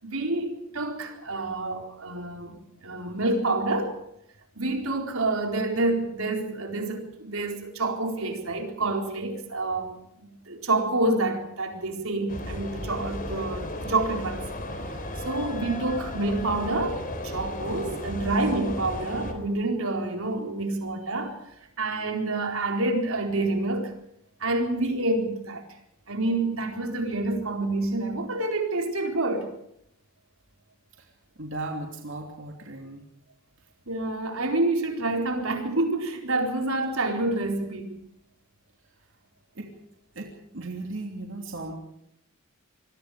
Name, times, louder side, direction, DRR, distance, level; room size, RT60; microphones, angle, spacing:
voice 1, 0.0-3.9 4.6-14.4 15.2-21.4 21.8-23.9 24.4-25.6 26.1-29.5 33.9-38.0, right 2 dB, 85° right, 4.3 m, -28 dB
sound 1, 12.3-19.3, left 1 dB, 40° left, 4.1 m, -34 dB
voice 2, 31.4-33.0 39.6-39.7 40.1-41.7, right 2 dB, 65° right, 3.0 m, -36 dB
27.0 x 22.5 x 5.0 m
head